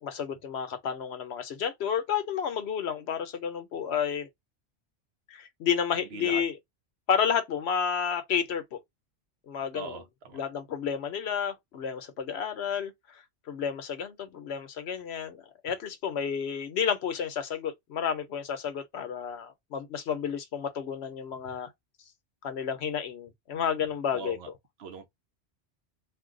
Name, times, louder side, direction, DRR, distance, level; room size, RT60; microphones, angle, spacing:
voice 1, 0.0-4.3 5.3-6.6 7.1-8.8 9.5-10.0 10.3-21.7 22.4-24.5, left 7 dB, 70° left, 0.9 m, -31 dB
voice 2, 6.1-6.4 9.7-10.0 10.3-10.4 24.1-24.5 24.8-25.1, right 4 dB, 65° right, 0.9 m, -39 dB
2.5 x 2.2 x 3.7 m
omnidirectional pair, 1.2 m